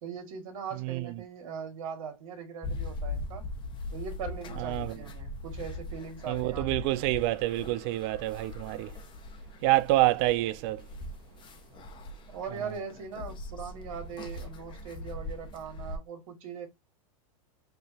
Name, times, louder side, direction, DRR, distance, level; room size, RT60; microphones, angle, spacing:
voice 1, 0.0-3.4 3.9-6.9 12.3-16.7, right 6 dB, 65° right, 2.1 m, -40 dB
sound 1, 2.6-16.0, left 2 dB, 25° left, 1.2 m, -40 dB
voice 2, 6.3-8.9 9.6-10.8, right 18 dB, 50° right, 0.4 m, -27 dB
5.3 x 3.0 x 2.7 m
hypercardioid pair, 115°, 18 cm